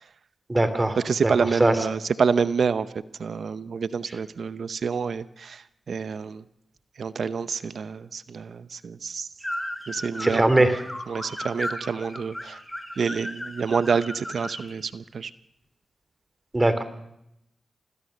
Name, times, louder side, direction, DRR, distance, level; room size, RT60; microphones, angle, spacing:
voice 1, 0.5-1.0 1.2-1.3 1.6-1.7 10.2-10.8 16.5-16.8, right 1 dB, 25° right, 11 dB, 3.3 m, -20 dB
voice 2, 1.0-2.9 3.2-6.4 7.0-9.3 9.9-10.7 11.1-12.6 13.0-15.3, right 5 dB, 70° right, 14 dB, 0.8 m, -27 dB
sound 1, 9.4-14.7, equal, 10° left, 5.3 m, -35 dB
25.5 x 18.5 x 6.7 m, 0.80 s
supercardioid pair, 40°, 0 cm